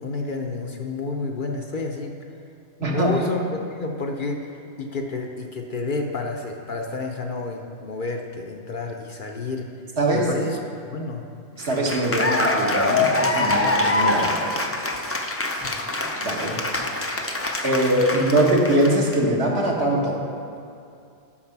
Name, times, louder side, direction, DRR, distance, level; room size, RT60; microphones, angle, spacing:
voice 1, 0.0-2.1 2.8-3.4 3.7-9.7 10.1-10.6 10.9-11.2 15.5-15.9 16.6-16.7 18.1-18.3, left 3 dB, 50° left, 2 dB, 0.8 m, -30 dB
voice 2, 2.8-3.1 10.0-10.3 11.6-14.5 16.2-16.6 17.6-20.2, right 1 dB, 65° right, -2 dB, 1.6 m, -22 dB
Cheering / Applause, 11.6-19.1, left 2 dB, 20° left, 0.3 m, -24 dB
8.6 x 6.3 x 5.8 m, 2.5 s
omnidirectional pair, 1.2 m